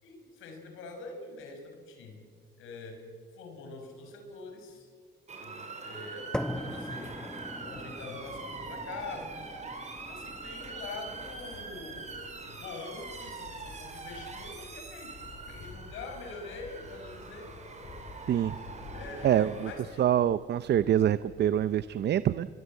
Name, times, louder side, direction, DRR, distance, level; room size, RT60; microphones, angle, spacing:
voice 1, 0.0-2.2 2.6-3.0 3.3-4.9 5.4-7.1 7.6-15.1 15.4-18.0 18.9-20.1, left 3 dB, 90° left, 4 dB, 5.1 m, -44 dB
Motor vehicle (road) / Siren, 5.3-19.8, right 4 dB, 35° right, 4.7 m, -43 dB
sound 1, 6.3-14.4, left 1 dB, 5° left, 1.1 m, -42 dB
sound 2, 8.2-21.8, left 3 dB, 65° left, 7.6 m, -51 dB
voice 2, 19.2-19.7 20.0-22.5, right 10 dB, 60° right, 15 dB, 0.6 m, -25 dB
24.5 x 22.5 x 8.3 m, 2.1 s
cardioid pair, 90°, 20 cm